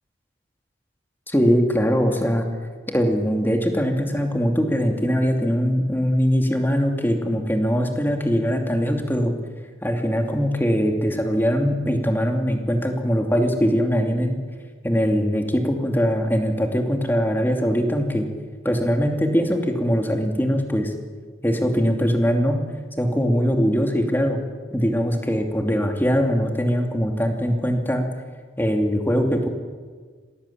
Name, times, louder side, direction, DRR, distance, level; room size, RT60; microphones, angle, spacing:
voice 1, 1.3-2.5 2.9-9.3 9.8-14.4 14.8-18.3 18.6-20.9 21.4-22.6 23.0-24.4 24.7-28.0 28.6-29.5, equal, 10° left, 3 dB, 2.7 m, -21 dB
26.5 x 19.0 x 8.7 m, 1.5 s
head